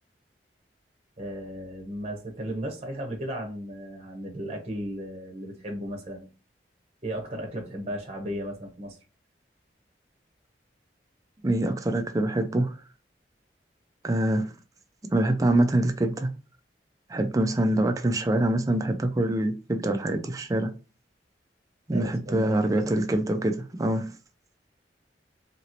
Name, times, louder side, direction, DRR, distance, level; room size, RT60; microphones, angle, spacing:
voice 1, 1.2-6.3 7.0-9.0 21.9-22.9, equal, 35° right, 0.7 m, -35 dB
voice 2, 11.4-12.7 14.0-14.5 15.1-16.3 17.1-20.7 21.9-24.1, right 1 dB, 20° right, 0.3 m, -25 dB
2.9 x 2.8 x 2.8 m
head